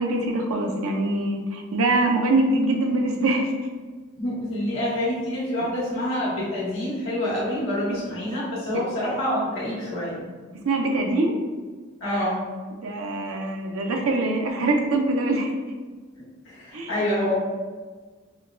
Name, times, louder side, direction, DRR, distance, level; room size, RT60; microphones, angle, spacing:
voice 1, 0.0-3.5 8.7-8.8 10.5-11.4 12.7-15.5 16.7-16.9, right 2 dB, 85° right, 2 dB, 0.5 m, -23 dB
voice 2, 4.2-10.2 12.0-12.4 16.1-17.3, left 1 dB, 70° left, -7 dB, 1.3 m, -27 dB
5.0 x 2.1 x 2.5 m, 1.4 s
head